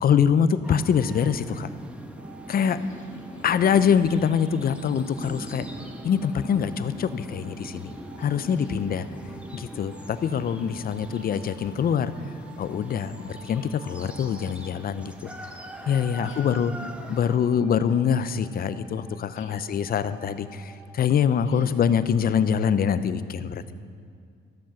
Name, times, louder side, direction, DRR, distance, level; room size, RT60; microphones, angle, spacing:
voice 1, 0.0-1.7 2.5-2.8 3.4-5.7 6.0-7.9 8.2-9.1 9.5-15.3 15.9-16.7 17.1-23.6, left 7 dB, 50° left, 14 dB, 0.5 m, -24 dB
sound 1, 0.6-17.4, equal, 5° right, 1.0 m, -41 dB
sound 2, 2.2-20.9, right 2 dB, 55° right, 2.1 m, -51 dB
voice 2, 2.5-3.6 8.2-8.9 16.0-16.8 17.9-18.0 19.4-19.5 21.4-21.8, left 4 dB, 75° left, 0 dB, 1.9 m, -48 dB
13.0 x 7.4 x 5.8 m, 2.2 s
cardioid pair, 90°, 20 cm